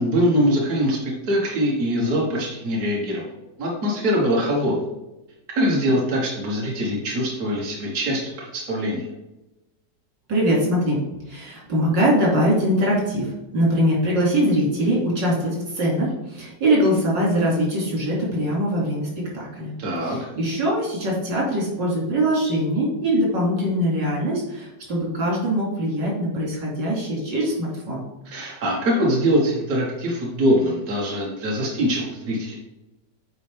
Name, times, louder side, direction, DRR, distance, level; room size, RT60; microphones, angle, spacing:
voice 1, 0.0-3.2 3.6-4.8 5.5-9.1 19.8-20.3 28.3-32.6, equal, 55° right, -4 dB, 1.9 m, -23 dB
voice 2, 10.3-19.7 20.0-28.0, equal, 80° right, -4 dB, 3.2 m, -22 dB
9.1 x 4.4 x 3.5 m, 0.98 s
omnidirectional pair, 1.9 m